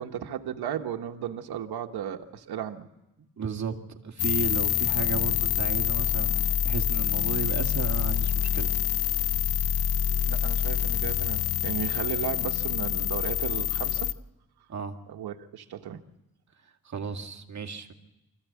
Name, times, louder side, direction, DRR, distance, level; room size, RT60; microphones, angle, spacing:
voice 1, 0.0-2.9 10.3-14.1 15.1-16.0, right 9 dB, 90° right, 5 dB, 1.2 m, -35 dB
voice 2, 3.4-8.7 14.7-15.0 16.8-17.9, right 6 dB, 45° right, 3 dB, 2.1 m, -34 dB
sound 1, 4.2-14.1, left 11 dB, 80° left, 0.7 m, -26 dB
24.5 x 15.0 x 8.4 m, 0.99 s
cardioid pair, 85°, 37 cm